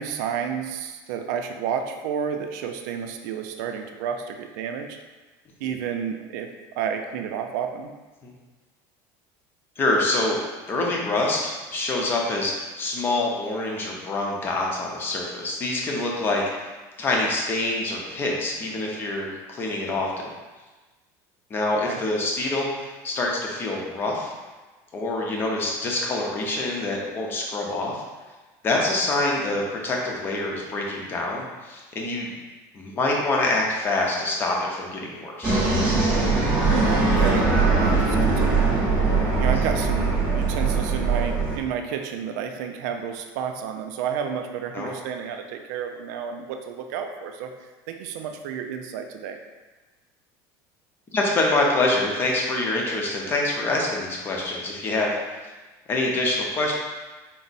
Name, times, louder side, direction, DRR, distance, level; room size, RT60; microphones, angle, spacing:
voice 1, 0.0-4.9 5.6-6.5 6.8-7.9 21.9-22.0 36.8-37.5 37.8-38.8 39.4-47.5 47.9-49.4, right 7 dB, 90° right, 5 dB, 0.4 m, -31 dB
voice 2, 9.8-10.4 10.7-16.7 17.0-20.1 21.5-24.3 24.9-28.0 28.6-32.3 32.7-35.6 39.5-39.7 44.7-45.0 51.1-55.5 55.9-56.7, left 2 dB, 25° left, -1 dB, 0.6 m, -26 dB
sound 1, 35.4-41.6, right 3 dB, 10° right, 0.8 m, -21 dB
4.5 x 2.0 x 4.0 m, 1.2 s
cardioid pair, 170°, 9 cm